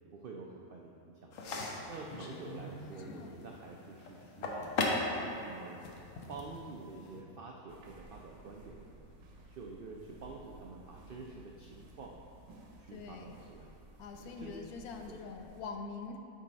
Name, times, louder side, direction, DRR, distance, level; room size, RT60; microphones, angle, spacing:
voice 1, 0.1-1.3 1.6-4.8 5.4-5.8 6.3-9.1 9.5-12.1 12.8-13.7 14.2-14.6 15.1-15.3, right 4 dB, 90° right, 0 dB, 0.4 m, -48 dB
sound 1, 1.3-7.2, left 2 dB, 65° left, 1.1 m, -39 dB
sound 2, 7.7-15.6, right 2 dB, 70° right, 1.1 m, -56 dB
voice 2, 12.9-13.4 14.0-16.2, left 4 dB, 90° left, 4 dB, 1.1 m, -44 dB
8.7 x 3.7 x 4.1 m, 2.7 s
omnidirectional pair, 1.5 m